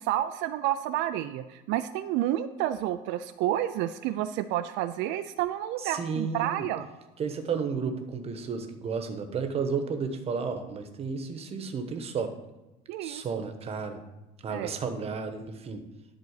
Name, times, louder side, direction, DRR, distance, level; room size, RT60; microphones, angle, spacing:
voice 1, 0.0-6.9 12.9-13.2 14.5-14.7, right 12 dB, 80° right, 10 dB, 0.5 m, -30 dB
voice 2, 5.8-6.7 7.2-12.3 13.0-14.0 14.4-15.8, right 5 dB, 35° right, 6 dB, 1.1 m, -32 dB
11.0 x 4.1 x 6.5 m, 1.0 s
cardioid pair, 150°, 19 cm